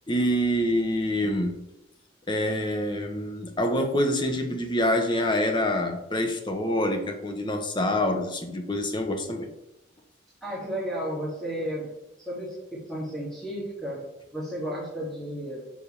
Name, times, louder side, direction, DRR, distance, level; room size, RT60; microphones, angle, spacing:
voice 1, 0.1-1.7 2.3-9.5, left 1 dB, 25° left, 0.9 m, -26 dB
voice 2, 10.4-11.9 12.2-14.1 14.3-15.6, equal, ahead, 2.0 m, -33 dB
6.6 x 5.0 x 5.5 m
head